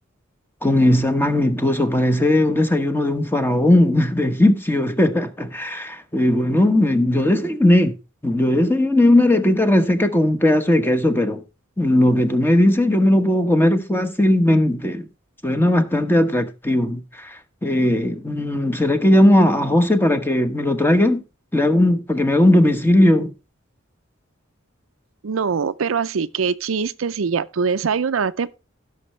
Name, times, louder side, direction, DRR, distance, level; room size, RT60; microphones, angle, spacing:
voice 1, 0.6-7.9 8.2-11.4 11.8-15.0 15.4-21.2 21.5-23.3, left 1 dB, 10° left, 1.1 m, -18 dB
voice 2, 25.2-28.5, right 5 dB, 85° right, 0.5 m, -23 dB
16.0 x 6.5 x 3.2 m
head